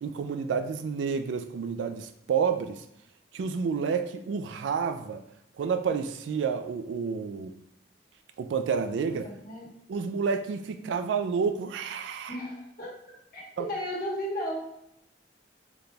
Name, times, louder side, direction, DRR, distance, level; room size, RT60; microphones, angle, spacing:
voice 1, 0.0-2.8 3.3-5.2 5.6-7.5 8.4-9.3 9.9-12.4 13.6-13.7, right 6 dB, 90° right, 9 dB, 0.3 m, -29 dB
voice 2, 9.2-9.7 10.8-10.9 12.3-12.9 13.3-14.8, equal, 55° left, -3 dB, 1.2 m, -35 dB
4.0 x 3.3 x 2.3 m, 0.80 s
head